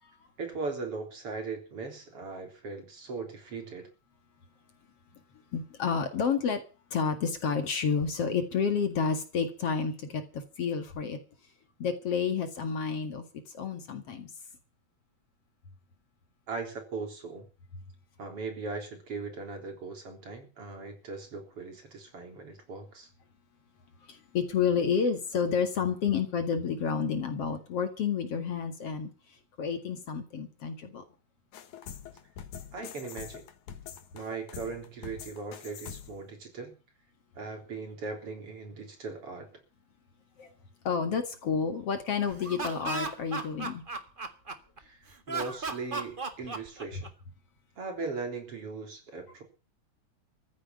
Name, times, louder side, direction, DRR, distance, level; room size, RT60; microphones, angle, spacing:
voice 1, 0.4-3.9 16.5-17.5 18.2-23.1 32.7-33.4 34.1-36.7 37.3-39.5 44.8-47.1 47.8-49.4, right 4 dB, 50° right, 4.5 m, -39 dB
voice 2, 5.5-6.6 6.9-11.2 11.8-13.2 13.5-14.3 24.0-29.1 29.6-31.0 40.4-40.5 40.8-43.8, left 6 dB, 55° left, 2.8 m, -30 dB
sound 1, 31.5-36.3, left 8 dB, 80° left, 2.9 m, -44 dB
Laughter, 42.3-44.8 45.3-47.3, right 3 dB, 25° right, 1.1 m, -35 dB
15.0 x 8.4 x 9.7 m
omnidirectional pair, 3.4 m